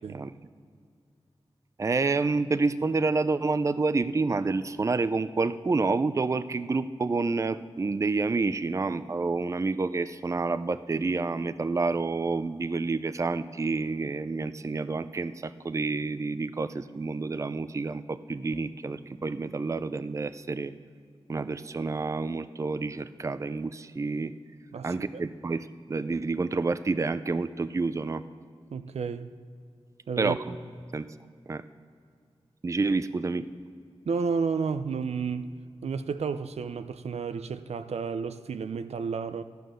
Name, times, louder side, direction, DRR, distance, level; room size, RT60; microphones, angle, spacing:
voice 1, 1.8-20.7 21.3-24.3 24.8-28.2 30.2-30.6 30.9-31.1 31.5-31.6 32.6-33.5, right 3 dB, 30° right, 0.4 m, -28 dB
voice 2, 28.7-29.3 30.1-30.4 34.1-35.5 35.8-39.4, right 5 dB, 85° right, 0.5 m, -31 dB
13.5 x 9.2 x 6.3 m
wide cardioid pair, 95°, 11 cm